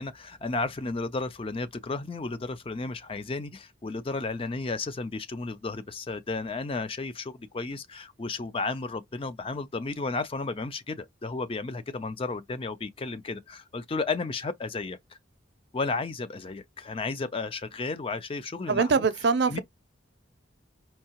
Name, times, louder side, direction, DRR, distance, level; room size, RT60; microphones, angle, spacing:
voice 1, 0.0-15.0 15.7-19.0 19.5-19.6, left 3 dB, 30° left, 0.4 m, -33 dB
voice 2, 18.7-19.6, right 4 dB, 60° right, 0.5 m, -23 dB
4.5 x 2.7 x 2.8 m
head